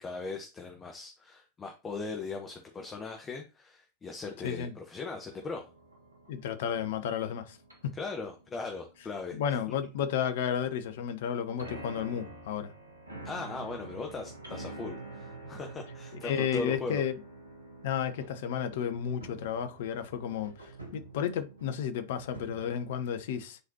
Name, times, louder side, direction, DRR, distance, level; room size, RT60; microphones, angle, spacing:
voice 1, 0.0-5.6 7.9-9.4 13.2-17.0, left 3 dB, 20° left, 1.1 m, -39 dB
voice 2, 4.4-4.7 6.3-7.6 7.8-8.0 9.3-12.7 16.2-17.1 17.8-23.6, left 8 dB, 55° left, 0.8 m, -32 dB
sound 1, 5.3-22.9, right 2 dB, 80° right, 1.6 m, -48 dB
9.6 x 4.1 x 2.9 m
figure-of-eight pair, 90°, 0 cm